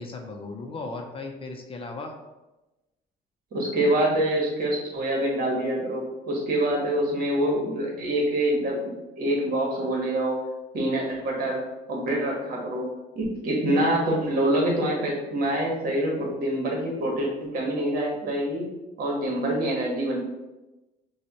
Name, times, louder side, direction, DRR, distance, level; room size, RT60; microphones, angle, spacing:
voice 1, 0.0-2.1, left 3 dB, 35° left, 2 dB, 0.6 m, -36 dB
voice 2, 3.5-10.4 10.7-11.6 11.9-12.9 13.1-18.7 19.0-20.2, right 1 dB, 60° right, -2 dB, 1.5 m, -26 dB
6.1 x 2.3 x 3.0 m, 1.0 s
cardioid pair, 110°, 17 cm